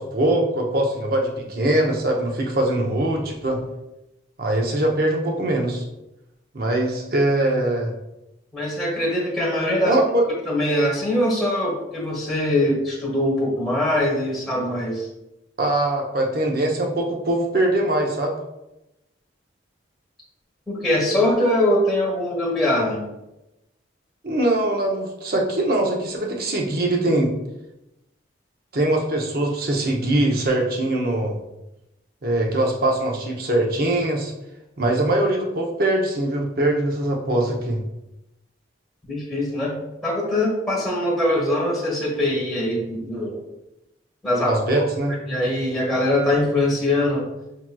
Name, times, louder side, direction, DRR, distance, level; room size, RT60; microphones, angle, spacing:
voice 1, 0.0-3.6 4.4-5.8 6.5-7.9 9.9-10.2 15.6-18.4 24.2-27.3 28.7-31.4 32.2-34.3 34.8-37.8 44.4-45.1, right 1 dB, 50° right, 1 dB, 0.7 m, -22 dB
voice 2, 8.5-10.0 10.5-15.1 20.7-23.1 39.1-39.7 40.0-43.4 44.2-44.5 45.3-47.3, left 1 dB, ahead, -4 dB, 1.2 m, -22 dB
6.0 x 2.9 x 2.2 m, 0.92 s
head